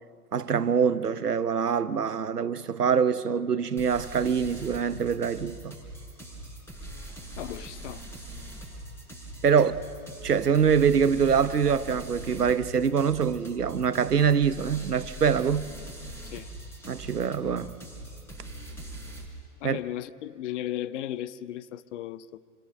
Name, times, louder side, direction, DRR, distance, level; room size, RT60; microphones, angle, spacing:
voice 1, 0.3-5.8 9.4-9.8 10.2-15.7 16.9-17.8 19.6-19.8, right 7 dB, 90° right, 1.0 m, -24 dB
sound 1, 3.8-19.3, right 1 dB, 5° left, 5.8 m, -42 dB
voice 2, 7.4-8.0 16.2-16.5 19.6-22.4, left 12 dB, 50° left, 0.9 m, -36 dB
28.0 x 24.5 x 6.6 m
figure-of-eight pair, 110°, 45 cm